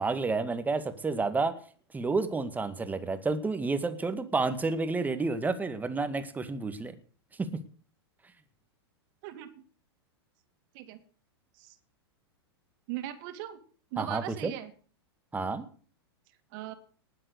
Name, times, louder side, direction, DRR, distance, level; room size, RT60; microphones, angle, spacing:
voice 1, 0.0-1.5 1.9-6.9 7.4-7.5 14.0-14.5 15.3-15.7, right 3 dB, 10° right, 10 dB, 2.0 m, -30 dB
voice 2, 12.9-13.6 13.9-14.7 16.5-16.7, right 14 dB, 50° right, 8 dB, 2.8 m, -39 dB
19.5 x 7.9 x 8.2 m, 0.42 s
hypercardioid pair, 105°, 14 cm